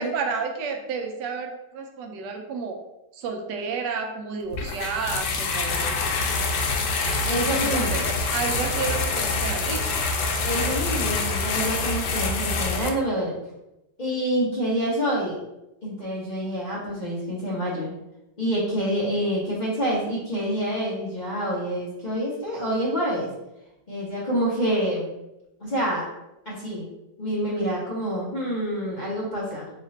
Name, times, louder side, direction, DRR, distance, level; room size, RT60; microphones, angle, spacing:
voice 1, 0.0-2.8 3.1-6.0 7.6-10.0, right 5 dB, 85° right, 3 dB, 1.3 m, -31 dB
sound 1, 4.5-12.9, left 3 dB, 85° left, 1.2 m, -26 dB
voice 2, 7.2-8.0 10.4-13.3 14.0-15.4 15.8-17.9 18.4-23.3 23.9-25.1 25.6-26.1 26.4-26.9 27.2-29.7, equal, 35° left, -7 dB, 0.8 m, -27 dB
3.2 x 2.9 x 4.0 m, 0.92 s
omnidirectional pair, 1.8 m